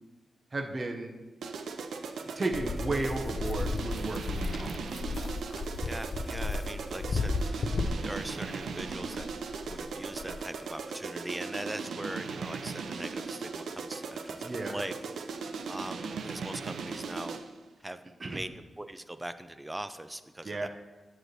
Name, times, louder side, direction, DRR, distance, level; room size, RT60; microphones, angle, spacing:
voice 1, 0.5-1.1 2.3-4.8 14.4-14.7 18.2-18.4 20.4-20.7, right 2 dB, 35° right, 2 dB, 0.8 m, -34 dB
sound 1, 1.4-17.6, right 4 dB, 85° right, 0.5 m, -38 dB
sound 2, 2.5-10.4, left 3 dB, 55° left, 0.4 m, -34 dB
voice 2, 5.8-9.2 9.7-14.9 15.7-17.4 17.8-18.0 18.3-18.5 18.8-20.7, right 1 dB, 15° right, 11 dB, 0.4 m, -41 dB
9.0 x 3.1 x 6.6 m, 1.2 s
cardioid pair, 85°, 0 cm